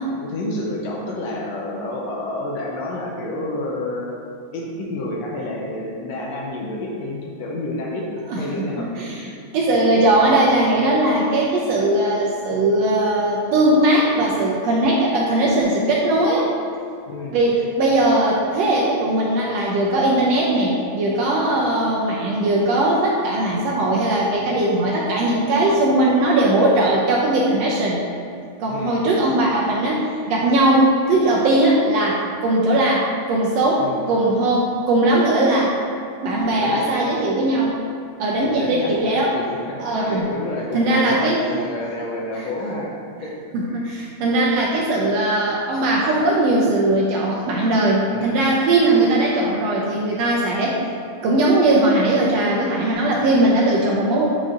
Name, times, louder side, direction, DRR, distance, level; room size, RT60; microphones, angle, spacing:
voice 1, 0.1-4.1 4.5-8.1 8.4-9.4 17.1-17.4 28.7-29.1 33.8-34.0 36.5-36.9 38.4-39.0 39.3-42.9 43.2-43.9 48.1-48.5, left 2 dB, 75° left, -2 dB, 1.8 m, -29 dB
voice 2, 8.3-9.2 9.5-16.5 17.3-28.0 28.6-35.7 36.2-37.8 38.2-39.3 39.8-40.3 40.7-41.4 43.5-50.8 51.2-54.3, right 1 dB, 75° right, -3 dB, 1.6 m, -19 dB
8.3 x 5.1 x 2.5 m, 2.5 s
omnidirectional pair, 3.4 m